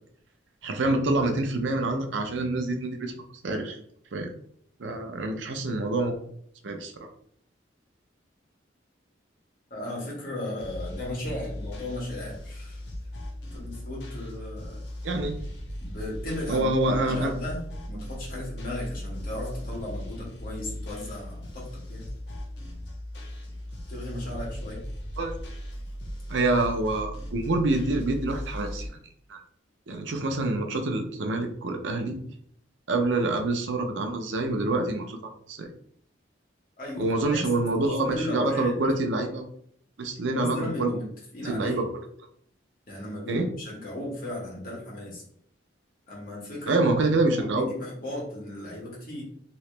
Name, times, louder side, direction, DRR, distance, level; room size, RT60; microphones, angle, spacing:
voice 1, 0.6-3.1 3.4-3.8 4.1-4.3 4.8-6.2 6.6-7.1 15.0-15.4 16.5-17.3 25.2-25.4 26.3-28.9 29.3-29.4 29.9-32.2 32.9-35.7 37.0-39.4 40.0-40.9 41.4-41.8 43.3-43.5 46.7-47.7, right 2 dB, 80° right, 4 dB, 0.6 m, -26 dB
voice 2, 9.7-12.8 13.5-14.8 15.8-16.7 17.0-22.0 23.9-24.8 36.8-37.5 37.8-38.7 40.3-41.8 42.9-45.2 46.1-46.8 47.2-49.2, left 1 dB, 50° left, -4 dB, 1.5 m, -36 dB
sound 1, 10.6-28.9, equal, 65° left, 0.7 m, -38 dB
3.0 x 2.9 x 3.2 m, 0.65 s
head